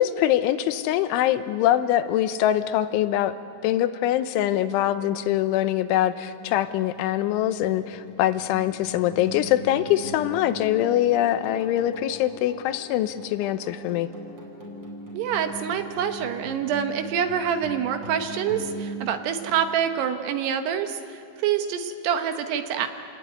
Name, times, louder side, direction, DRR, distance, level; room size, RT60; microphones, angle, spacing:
voice 1, 0.0-3.3 3.6-14.1, left 12 dB, 90° left, 11 dB, 3.3 m, -23 dB
sound 1, 5.9-20.1, right 1 dB, 30° right, 5.8 m, -41 dB
voice 2, 15.1-22.9, right 8 dB, 75° right, 7 dB, 2.8 m, -26 dB
29.0 x 20.0 x 9.4 m, 2.5 s
omnidirectional pair, 5.4 m